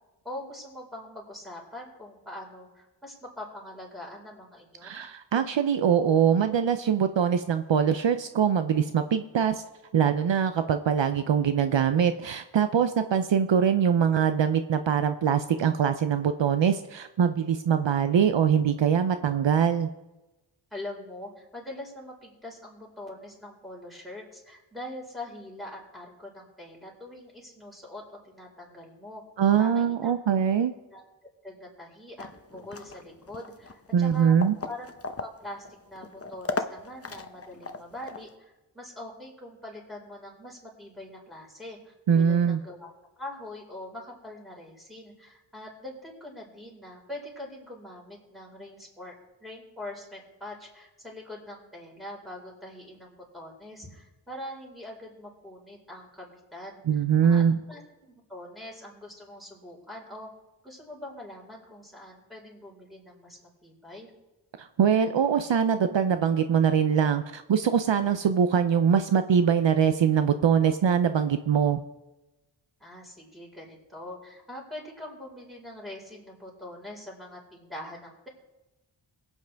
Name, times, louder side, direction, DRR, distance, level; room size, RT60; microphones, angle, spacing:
voice 1, 0.2-5.0 20.7-29.2 29.6-30.1 30.9-31.0 31.4-34.4 34.7-34.9 35.2-42.9 43.2-49.1 49.4-60.3 60.6-64.1 72.8-78.3, left 1 dB, ahead, -2 dB, 4.6 m, -43 dB
voice 2, 4.8-9.6 9.9-19.9 29.4-30.7 33.9-34.5 42.1-42.6 56.9-57.6 64.6-71.8, right 7 dB, 65° right, 9 dB, 0.7 m, -23 dB
sound 1, 32.2-38.3, left 3 dB, 30° left, 0.8 m, -38 dB
22.5 x 8.2 x 3.5 m, 1.0 s
wide cardioid pair, 75°, 47 cm